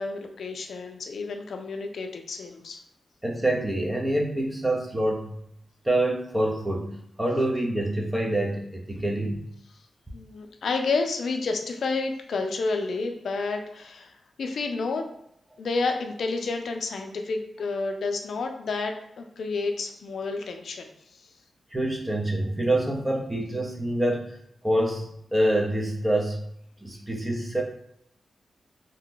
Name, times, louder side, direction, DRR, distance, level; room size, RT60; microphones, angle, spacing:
voice 1, 0.0-2.8 10.1-14.1 14.4-15.1 15.6-20.9, left 3 dB, 75° left, 4 dB, 0.4 m, -30 dB
voice 2, 3.2-5.4 5.8-9.4 21.7-26.4 26.8-27.6, right 1 dB, 15° right, -1 dB, 0.7 m, -26 dB
2.7 x 2.2 x 3.8 m, 0.75 s
cardioid pair, 70°, 0 cm